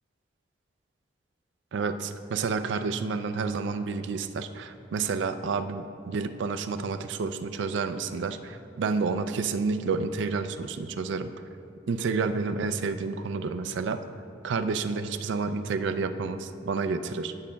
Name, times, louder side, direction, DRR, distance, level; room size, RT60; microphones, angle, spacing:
voice 1, 1.7-11.3 11.9-14.0 14.4-17.3, right 4 dB, 90° right, 10 dB, 0.4 m, -30 dB
12.5 x 6.1 x 2.3 m, 2.6 s
head